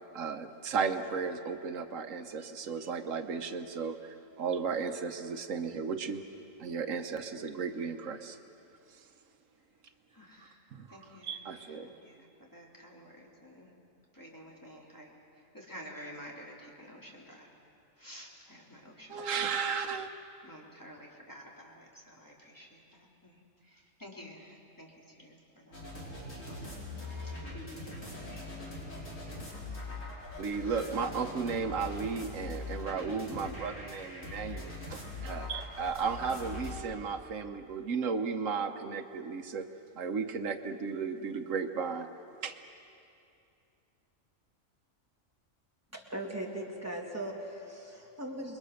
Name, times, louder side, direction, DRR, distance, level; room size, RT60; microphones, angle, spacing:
voice 1, 0.1-6.2 6.6-8.4 8.9-9.0 10.7-10.9 11.3-11.9 19.1-20.1 30.4-39.7 39.9-42.1 42.4-42.6, right 5 dB, 85° right, 7 dB, 1.4 m, -34 dB
voice 2, 10.1-13.7 14.1-17.5 18.0-19.9 20.4-27.5 28.2-28.8, equal, 15° left, -3 dB, 3.1 m, -52 dB
sound 1, 25.7-36.8, left 2 dB, 90° left, 5.5 m, -42 dB
voice 3, 45.9-48.6, right 1 dB, 10° right, -1 dB, 2.7 m, -39 dB
28.5 x 22.0 x 6.5 m, 2.6 s
omnidirectional pair, 1.3 m